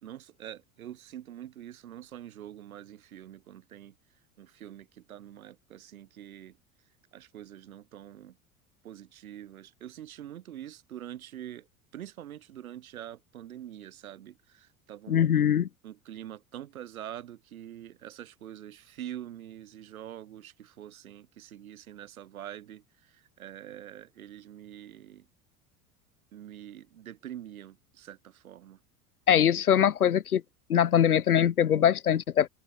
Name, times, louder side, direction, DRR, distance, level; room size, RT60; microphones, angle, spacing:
voice 1, 0.0-3.9 4.4-6.6 7.1-8.4 8.8-11.7 11.9-15.4 15.8-25.3 26.3-28.8, right 11 dB, 75° right, 1.2 m, -45 dB
voice 2, 15.1-15.7 29.3-30.4 30.7-32.5, left 9 dB, 90° left, 0.6 m, -22 dB
open air
figure-of-eight pair, 75°, 43 cm